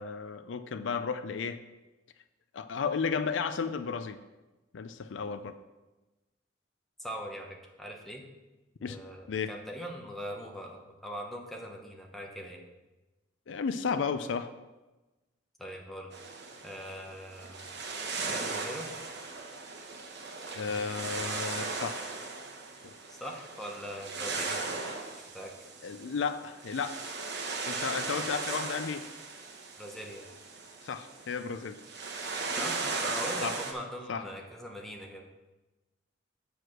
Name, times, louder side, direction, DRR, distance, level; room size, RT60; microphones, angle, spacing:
voice 1, 0.0-1.6 2.5-4.2 4.7-5.6 8.8-9.0 9.3-9.5 13.5-14.5 20.5-22.1 25.8-27.1 27.7-29.1 30.8-31.8 33.4-33.5 34.1-34.2, left 5 dB, 75° left, 11 dB, 0.4 m, -33 dB
voice 2, 7.0-8.2 8.9-12.6 15.6-16.1 16.6-17.7 18.3-18.9 23.1-24.6 25.2-25.5 28.1-28.2 29.8-30.2 32.5-35.3, equal, ahead, 0 dB, 1.1 m, -41 dB
sound 1, 16.1-33.7, right 3 dB, 65° right, 1.2 m, -37 dB
7.8 x 4.7 x 6.4 m, 1.1 s
head